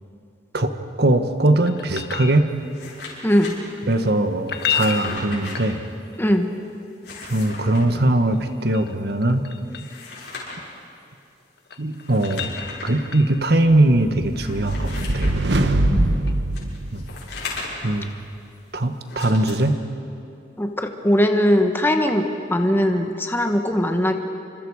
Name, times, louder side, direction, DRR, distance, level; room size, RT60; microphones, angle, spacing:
voice 1, 1.0-2.5 3.9-5.8 7.3-9.4 11.8-12.5 12.8-15.3 16.9-17.1 17.8-18.1 18.7-19.8, right 1 dB, 65° right, 8 dB, 1.4 m, -20 dB
sound 1, 1.7-2.9 4.4-6.2 8.3-10.0 11.4-13.5 16.2-16.3, left 8 dB, 65° left, 1.4 m, -31 dB
sound 2, 2.5-3.5 4.5-5.5 6.9-7.8 9.6-10.7 11.9-12.9 13.5-13.6 14.3-15.7 16.5-18.0 19.0-19.5, left 3 dB, 85° left, 6.4 m, -37 dB
voice 2, 3.2-3.5 6.2-6.5 15.9-16.3 20.6-24.1, equal, 15° left, 4 dB, 1.2 m, -20 dB
sound 3, 14.0-17.6, right 1 dB, 80° right, 1.3 m, -23 dB
29.5 x 25.5 x 4.9 m, 2.6 s
head